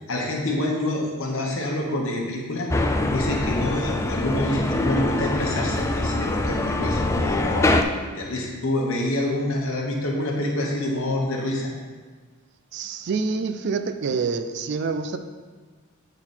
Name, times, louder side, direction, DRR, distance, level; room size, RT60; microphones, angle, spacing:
voice 1, 0.1-7.7 8.1-11.7, left 1 dB, 75° left, -1 dB, 1.2 m, -27 dB
sound 1, 2.7-7.8, left 2 dB, 15° left, 0.3 m, -24 dB
voice 2, 12.7-15.2, right 4 dB, 55° right, 9 dB, 0.4 m, -27 dB
7.9 x 3.9 x 4.3 m, 1.4 s
head